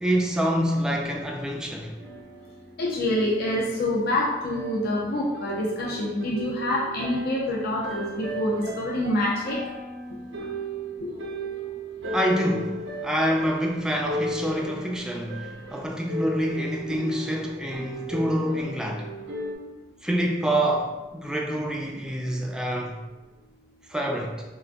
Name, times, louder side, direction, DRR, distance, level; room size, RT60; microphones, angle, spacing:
voice 1, 0.0-1.9 12.1-19.0 20.0-22.9 23.9-24.4, equal, 5° right, 0 dB, 0.3 m, -26 dB
sound 1, 2.0-19.5, right 1 dB, 75° right, 0.6 m, -36 dB
voice 2, 2.8-9.6 11.0-11.2, left 1 dB, 60° left, -3 dB, 0.5 m, -26 dB
3.8 x 2.4 x 2.2 m, 1.1 s
head